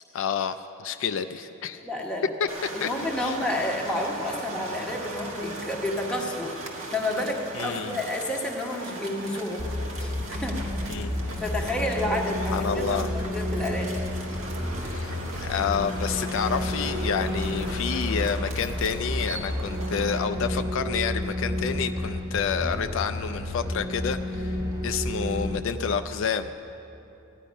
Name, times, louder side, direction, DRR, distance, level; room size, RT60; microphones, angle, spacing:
voice 1, 0.1-1.8 2.4-2.5 2.8-2.9 3.2-3.4 7.5-8.0 10.9-11.2 12.5-13.1 14.8-24.6 24.8-26.5, left 6 dB, 65° left, 9 dB, 0.4 m, -29 dB
voice 2, 1.8-2.3 2.7-9.7 10.0-10.6 11.4-14.0, left 1 dB, 5° left, -1 dB, 1.2 m, -30 dB
sound 1, 2.5-20.2, right 2 dB, 75° right, 1.5 m, -39 dB
sound 2, 9.6-25.6, left 1 dB, 20° right, 1.2 m, -31 dB
15.0 x 10.0 x 5.3 m, 3.0 s
head